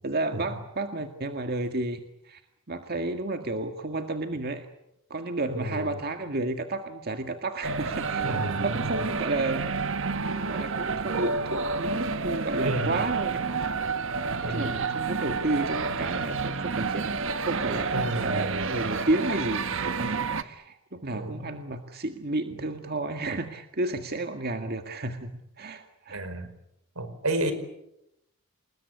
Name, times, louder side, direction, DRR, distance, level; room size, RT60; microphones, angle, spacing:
voice 1, 0.0-2.4 2.7-4.7 5.1-9.7 10.5-13.4 14.4-25.3 25.6-26.2, right 2 dB, 45° right, 6 dB, 1.9 m, -32 dB
voice 2, 5.5-6.0 8.2-8.9 12.2-13.0 14.4-14.8 17.9-18.7 21.1-21.5 26.1-26.5 26.9-27.5, right 1 dB, 85° right, 10 dB, 5.1 m, -32 dB
sound 1, 7.6-20.4, right 4 dB, 60° right, 1.3 m, -29 dB
28.5 x 20.5 x 8.5 m, 0.83 s
head